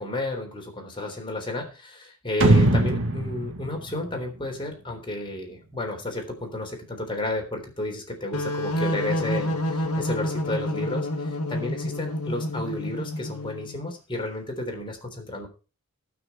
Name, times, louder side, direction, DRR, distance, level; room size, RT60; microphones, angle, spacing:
voice 1, 0.0-11.1 11.5-15.5, left 1 dB, 25° left, 2 dB, 3.7 m, -32 dB
sound 1, 2.4-4.9, right 1 dB, 60° right, 2.1 m, -22 dB
sound 2, 8.3-13.8, left 1 dB, 75° left, 1.8 m, -29 dB
18.5 x 6.3 x 4.5 m, 0.33 s
head